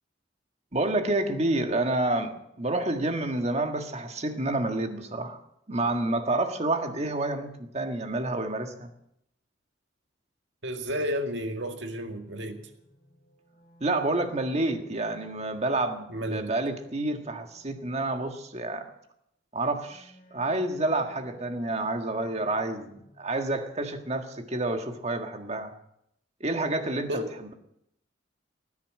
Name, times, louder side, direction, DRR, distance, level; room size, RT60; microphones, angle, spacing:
voice 1, 0.7-5.4 5.7-8.9 13.8-18.9 19.5-25.7 26.4-27.2, right 2 dB, 35° right, 6 dB, 1.7 m, -29 dB
voice 2, 10.6-12.6 16.1-16.5 27.1-27.3, equal, 65° right, 5 dB, 2.1 m, -32 dB
sound 1, 11.2-18.8 19.9-23.6, equal, 40° left, 3.8 m, -58 dB
19.0 x 10.0 x 7.6 m, 0.77 s
head